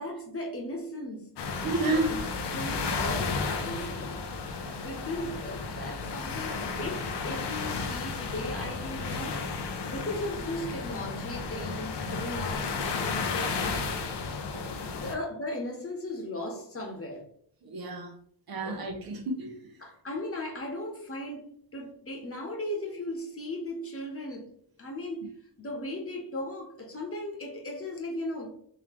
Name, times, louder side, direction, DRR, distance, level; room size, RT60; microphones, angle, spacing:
voice 1, 0.0-9.4 9.8-13.9 14.5-17.2 18.5-18.8 19.8-24.5 24.8-25.3 25.6-28.5, left 1 dB, 30° left, 1.1 m, -37 dB
sound 1, 1.4-15.1, left 4 dB, 70° left, 0.7 m, -33 dB
voice 2, 1.6-2.1 17.7-18.1 18.5-19.5, right 2 dB, 55° right, 0.9 m, -30 dB
3.8 x 3.0 x 3.0 m
cardioid pair, 65°, 43 cm